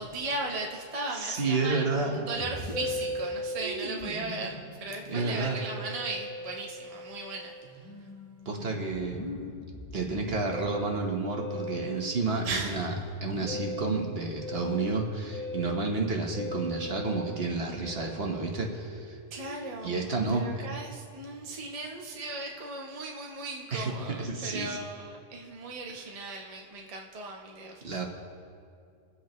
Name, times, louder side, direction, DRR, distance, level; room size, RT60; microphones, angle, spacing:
voice 1, 0.0-7.9 12.4-12.9 19.3-28.0, right 2 dB, 30° right, 0 dB, 0.9 m, -37 dB
voice 2, 1.1-2.1 5.1-5.6 8.4-9.3 9.9-12.9 13.2-19.2 19.8-20.7 23.7-24.8 27.8-28.1, right 3 dB, 55° right, 1 dB, 1.4 m, -30 dB
Musical instrument, 2.3-19.9, left 1 dB, 30° left, 1.2 m, -39 dB
23.5 x 7.9 x 3.1 m, 2.3 s
omnidirectional pair, 1.3 m